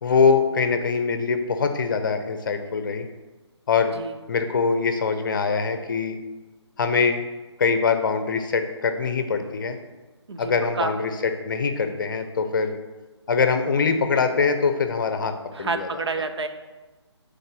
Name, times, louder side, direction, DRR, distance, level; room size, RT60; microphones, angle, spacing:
voice 1, 0.0-3.1 3.7-3.9 4.3-6.2 6.8-7.2 7.6-9.8 10.4-12.8 13.3-15.9, left 5 dB, 45° left, 8 dB, 0.7 m, -23 dB
voice 2, 10.3-10.9 15.5-16.5, right 4 dB, 65° right, 7 dB, 0.7 m, -29 dB
5.4 x 4.1 x 6.1 m, 1.2 s
figure-of-eight pair, 150°, 15 cm